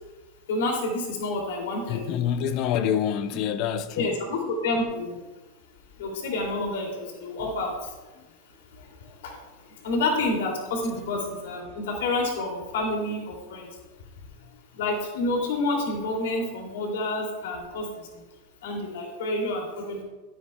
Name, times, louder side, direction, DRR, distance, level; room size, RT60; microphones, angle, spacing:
voice 1, 0.5-2.2 4.0-5.2 6.0-7.9 8.8-8.9 9.2-9.4 9.8-13.7 14.7-18.2 18.6-20.0, left 2 dB, 80° left, 2.6 m, -29 dB
voice 2, 1.9-4.2, left 9 dB, 50° left, 0.7 m, -26 dB
14.0 x 10.0 x 2.3 m
hypercardioid pair, 120°, 0 cm